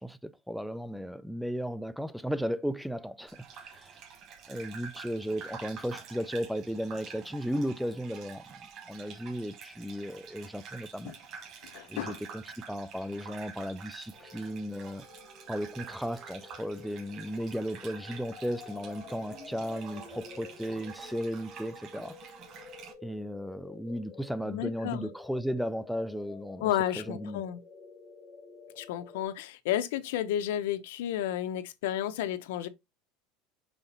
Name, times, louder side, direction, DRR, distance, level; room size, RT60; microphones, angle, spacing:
voice 1, 0.0-4.0 4.5-8.4 8.9-11.1 11.9-15.0 15.5-22.2 23.0-26.7 27.0-27.4, equal, ahead, 0.3 m, -35 dB
Gurgling / Bathtub (filling or washing), 3.3-22.9, right 6 dB, 35° right, 1.2 m, -48 dB
voice 2, 11.7-12.2 24.5-25.1 26.6-27.6 28.8-32.7, left 11 dB, 85° left, 0.8 m, -32 dB
sound 1, 14.1-29.2, left 5 dB, 20° left, 2.9 m, -50 dB
5.8 x 3.9 x 4.1 m
cardioid pair, 165°, 0 cm